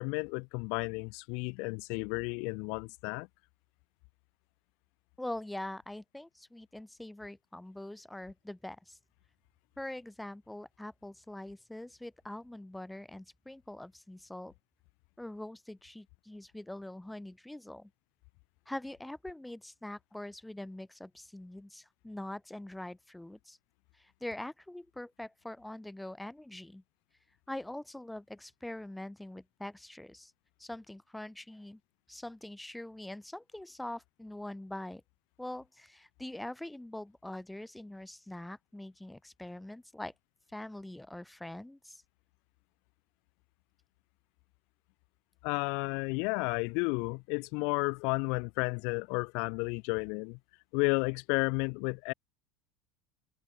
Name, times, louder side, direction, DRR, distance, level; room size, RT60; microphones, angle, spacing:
voice 1, 0.0-3.3 45.4-50.4 50.7-52.1, left 34 dB, 70° left, 0.7 m, -32 dB
voice 2, 5.2-9.0 9.8-14.5 15.2-17.9 18.7-23.6 24.0-26.8 27.5-30.3 30.6-31.8 32.1-35.0 35.4-40.1 40.5-42.0, left 1 dB, 5° left, 1.6 m, -43 dB
supercardioid pair, 105°, 0 cm